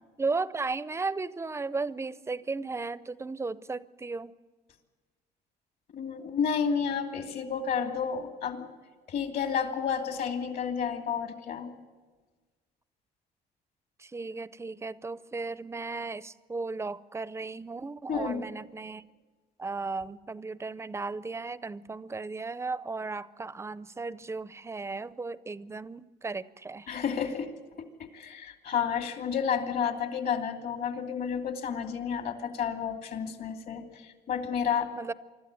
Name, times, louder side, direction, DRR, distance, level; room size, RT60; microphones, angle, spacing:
voice 1, 0.2-4.3 14.0-19.1 19.6-26.9 34.9-35.1, right 3 dB, 15° right, 17 dB, 0.6 m, -35 dB
voice 2, 5.9-8.7 9.1-11.7 18.1-18.4 26.9-27.5 27.8-34.9, left 7 dB, 60° left, 5 dB, 2.7 m, -31 dB
25.0 x 13.0 x 9.1 m, 1.3 s
cardioid pair, 110°, 17 cm